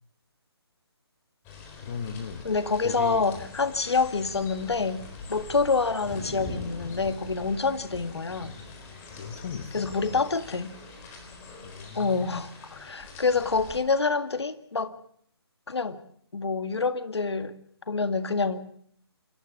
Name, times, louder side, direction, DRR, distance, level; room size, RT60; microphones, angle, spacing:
sound 1, 1.4-13.8, left 3 dB, 15° left, 4.0 m, -43 dB
voice 1, 1.8-2.5 2.8-3.4 9.2-10.2 11.6-12.4, left 6 dB, 35° left, 12 dB, 1.3 m, -37 dB
voice 2, 2.4-5.0 5.3-8.5 9.7-10.8 11.9-14.9 15.7-16.0 16.3-17.6 17.9-18.6, left 4 dB, 75° left, 12 dB, 1.9 m, -27 dB
27.5 x 14.5 x 8.4 m, 0.64 s
figure-of-eight pair, 155°, 14 cm